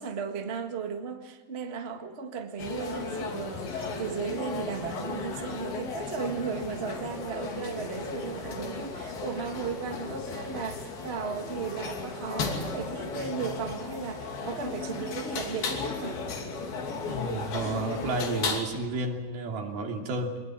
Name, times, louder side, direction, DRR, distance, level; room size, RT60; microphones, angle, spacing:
voice 1, 0.0-16.2, right 5 dB, 50° right, 0.7 m, -35 dB
sound 1, 2.6-18.6, left 4 dB, 80° left, 4.6 m, -35 dB
voice 2, 17.1-20.4, right 2 dB, 80° right, 4.6 m, -32 dB
23.0 x 20.0 x 8.9 m
omnidirectional pair, 4.3 m